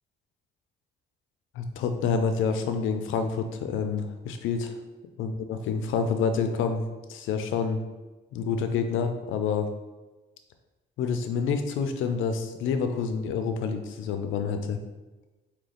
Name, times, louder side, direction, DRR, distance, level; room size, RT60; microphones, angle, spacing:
voice 1, 1.6-4.8 5.2-6.8 7.1-7.8 8.3-9.7 11.0-14.8, left 5 dB, 80° left, 8 dB, 0.5 m, -28 dB
3.7 x 2.8 x 3.4 m, 1.1 s
cardioid pair, 90°, 20 cm